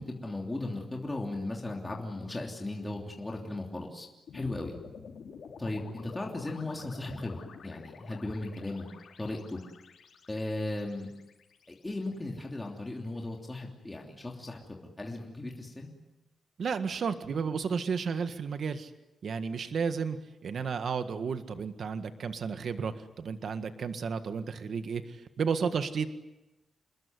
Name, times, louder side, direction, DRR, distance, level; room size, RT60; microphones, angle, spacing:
voice 1, 0.0-4.1 4.3-4.7 5.6-8.9 9.2-9.6 10.3-11.1 11.8-15.9, left 2 dB, 15° left, 0 dB, 3.1 m, -36 dB
sound 1, 4.3-12.6, left 6 dB, 70° left, 4.0 m, -50 dB
voice 2, 16.6-18.9 19.2-20.2 20.4-26.1, right 6 dB, 60° right, 9 dB, 1.7 m, -32 dB
28.0 x 21.5 x 9.6 m, 0.99 s
wide cardioid pair, 150°, 0 cm